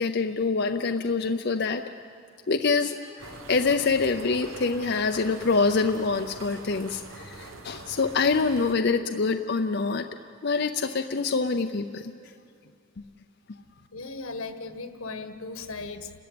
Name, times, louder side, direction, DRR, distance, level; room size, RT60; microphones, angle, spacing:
voice 1, 0.0-1.9 2.5-10.1 10.4-12.1, left 4 dB, 50° left, 5 dB, 0.6 m, -25 dB
sound 1, 3.2-8.8, right 2 dB, 75° right, 1.3 m, -44 dB
voice 2, 13.9-16.1, left 3 dB, 85° left, 8 dB, 1.5 m, -37 dB
30.0 x 14.0 x 8.7 m, 2.4 s
head